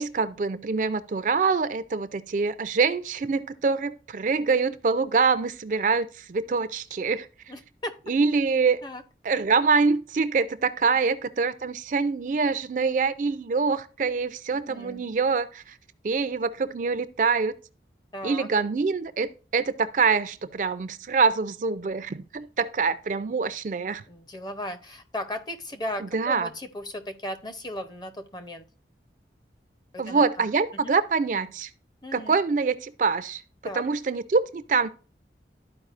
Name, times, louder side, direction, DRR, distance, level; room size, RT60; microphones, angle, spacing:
voice 1, 0.0-7.3 8.1-8.8 9.2-15.8 16.0-17.6 18.2-24.0 26.1-26.5 30.0-31.7 32.1-33.4 33.7-34.9, right 4 dB, 45° right, 0.4 m, -25 dB
voice 2, 7.5-7.9 8.8-9.0 11.0-11.2 14.5-15.0 18.1-18.5 24.1-28.6 29.9-30.5 30.7-30.9 32.0-32.4 33.6-33.8, left 1 dB, 25° left, 0.6 m, -36 dB
12.5 x 4.7 x 2.4 m
head